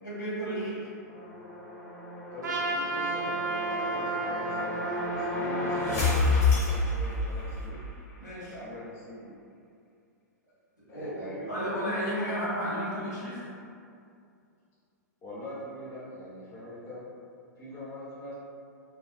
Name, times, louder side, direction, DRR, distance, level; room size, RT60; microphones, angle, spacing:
voice 1, 0.0-0.8 8.2-8.5 10.9-13.4, equal, 80° left, -9 dB, 1.2 m, -33 dB
sound 1, 1.1-7.8, left 3 dB, 60° left, 0.9 m, -30 dB
voice 2, 2.3-4.8 5.2-7.8 8.5-9.3 10.9-11.8 15.2-17.0 17.6-18.3, left 1 dB, 25° left, -9 dB, 0.6 m, -42 dB
Trumpet, 2.4-6.7, right 3 dB, 80° right, 0.4 m, -33 dB
2.6 x 2.0 x 2.4 m, 2.4 s
figure-of-eight pair, 105°, 10 cm